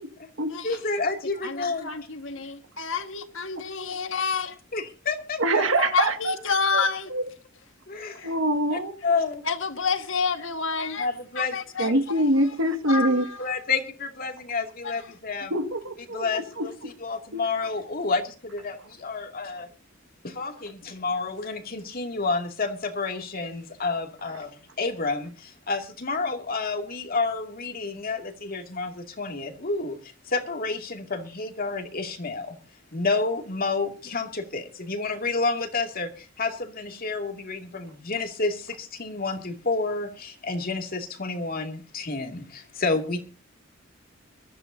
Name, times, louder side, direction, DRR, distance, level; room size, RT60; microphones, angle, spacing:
voice 1, 0.6-1.9 4.7-5.6 7.9-8.3 8.7-9.4 11.0-11.6 11.8-12.0 13.4-15.6 16.1-19.7 20.2-32.6 32.9-43.2, left 3 dB, 45° left, 2.5 m, -30 dB
voice 2, 1.4-4.5 5.8-7.1 8.2-8.3 9.5-11.1 11.4-12.3 12.9-13.4 14.8-14.9, left 5 dB, 70° left, 1.6 m, -29 dB
voice 3, 5.4-6.3 6.7-6.8 7.1-7.2 8.2-8.9 11.8-13.3 15.5-16.7 17.3-17.4, right 1 dB, 75° right, 1.9 m, -24 dB
23.0 x 14.0 x 2.7 m
head